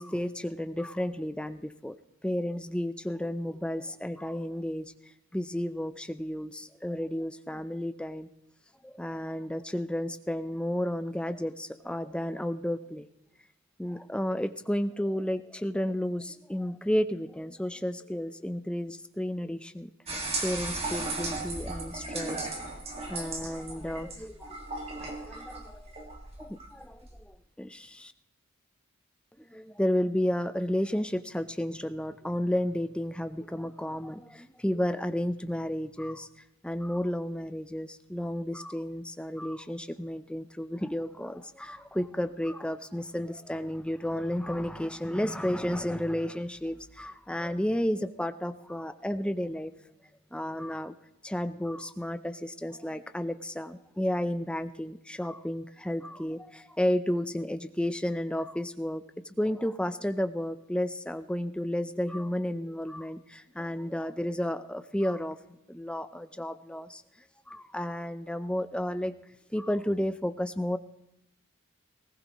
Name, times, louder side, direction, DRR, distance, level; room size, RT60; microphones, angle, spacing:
voice 1, 0.0-2.0 2.2-4.9 5.3-8.3 8.8-13.1 13.8-19.9 20.4-22.5 23.0-24.5 25.0-26.1 26.4-28.1 29.5-36.3 36.6-49.7 50.3-50.9 51.2-65.4 65.7-67.0 67.5-69.1 69.5-70.8, left 1 dB, 5° left, 10 dB, 0.5 m, -32 dB
sound 1, 20.1-27.2, right 2 dB, 30° right, 1.9 m, -36 dB
19.5 x 18.5 x 3.0 m, 0.83 s
head